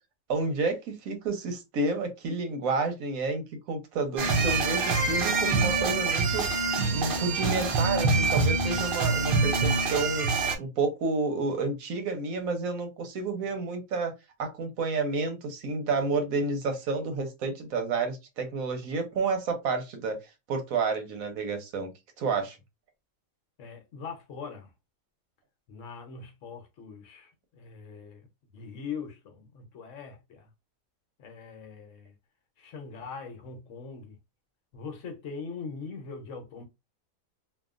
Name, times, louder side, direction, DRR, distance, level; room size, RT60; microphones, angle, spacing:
voice 1, 0.3-6.4 6.9-10.3 10.6-14.1 14.4-20.2 20.5-21.9 22.2-22.6, right 3 dB, 80° right, 1.2 m, -30 dB
sound 1, 4.2-10.6, right 3 dB, 60° right, 0.6 m, -25 dB
voice 2, 23.6-24.7 25.7-28.3 28.5-30.5 31.2-32.1 32.6-34.1 34.7-36.6, left 5 dB, 65° left, 1.0 m, -41 dB
2.8 x 2.2 x 2.4 m
omnidirectional pair, 1.4 m